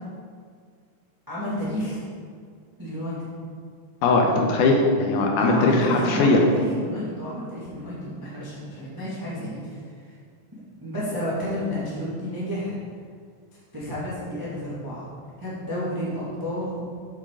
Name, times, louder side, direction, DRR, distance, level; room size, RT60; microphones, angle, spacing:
voice 1, 1.3-2.0 2.8-3.3 5.4-10.1 10.8-12.8 13.7-15.1 15.4-16.8, equal, 35° right, -9 dB, 0.3 m, -31 dB
voice 2, 4.0-6.4, left 3 dB, 80° left, 1 dB, 2.1 m, -20 dB
7.4 x 6.3 x 3.7 m, 2.1 s
omnidirectional pair, 3.9 m